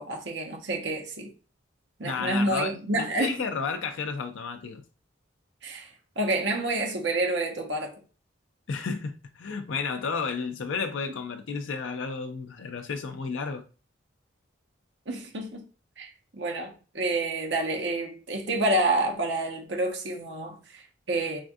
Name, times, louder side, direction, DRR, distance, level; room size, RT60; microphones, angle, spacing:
voice 1, 0.0-1.3 2.0-3.4 5.6-8.0 15.1-15.6 16.0-21.4, right 2 dB, 65° right, 0.9 m, -29 dB
voice 2, 2.0-4.8 8.7-13.6, left 5 dB, 75° left, 0.5 m, -32 dB
4.2 x 2.6 x 2.4 m
head